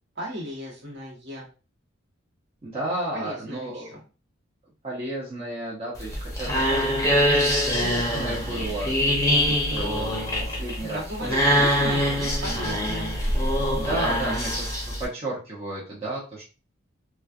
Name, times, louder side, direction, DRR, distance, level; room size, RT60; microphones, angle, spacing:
voice 1, 0.1-1.5 3.1-4.0 10.8-13.1, equal, 55° right, -2 dB, 1.1 m, -35 dB
voice 2, 2.6-3.9 4.8-11.3 13.8-16.4, right 1 dB, 30° right, -6 dB, 0.7 m, -33 dB
sound 1, 6.0-15.1, equal, 15° left, 0.7 m, -24 dB
3.0 x 2.2 x 2.4 m, 0.34 s
head